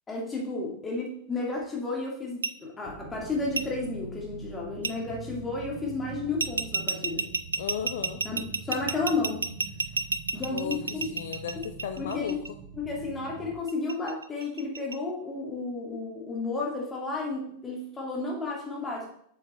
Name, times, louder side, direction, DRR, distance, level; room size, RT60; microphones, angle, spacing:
voice 1, 0.1-7.3 8.2-9.5 10.3-11.1 12.0-12.4 12.7-19.1, left 3 dB, 15° left, -2 dB, 2.2 m, -32 dB
sound 1, 2.4-2.5 3.6-3.7 4.8-4.9 6.4-12.5 13.7-15.0, right 4 dB, 75° right, 0.3 m, -30 dB
sound 2, 2.8-13.6, right 6 dB, 45° right, 0.9 m, -44 dB
voice 2, 7.6-8.2 10.5-12.4, left 9 dB, 60° left, 8 dB, 0.5 m, -35 dB
7.1 x 6.5 x 3.3 m, 0.67 s
figure-of-eight pair, 90°, 0 cm